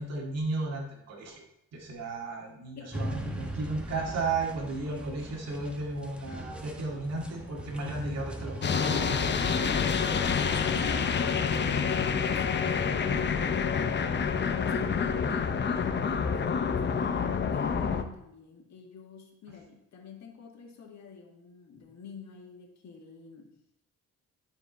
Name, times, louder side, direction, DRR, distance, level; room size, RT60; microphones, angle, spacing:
voice 1, 0.0-1.4 1.7-9.6, right 3 dB, 55° right, -2 dB, 2.0 m, -34 dB
sound 1, 2.9-9.7, right 1 dB, 5° right, 1.3 m, -40 dB
sound 2, 8.6-18.0, left 6 dB, 35° left, 0.7 m, -27 dB
voice 2, 9.6-10.0 10.3-23.5, left 6 dB, 65° left, 1 dB, 2.0 m, -46 dB
12.0 x 4.9 x 4.0 m, 0.77 s
cardioid pair, 90°, 30 cm